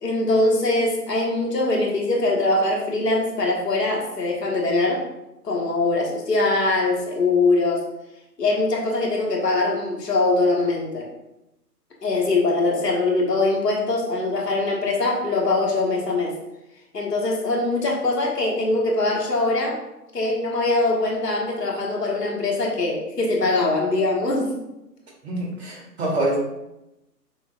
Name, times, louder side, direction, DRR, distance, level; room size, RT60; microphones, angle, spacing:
voice 1, 0.0-5.1 5.4-7.8 8.4-11.1 12.0-16.3 16.9-19.8 20.1-24.6, left 2 dB, 75° left, -1 dB, 1.2 m, -22 dB
voice 2, 25.2-26.4, right 1 dB, 40° right, -3 dB, 1.3 m, -25 dB
6.2 x 2.5 x 2.4 m, 0.91 s
figure-of-eight pair, 130°, 48 cm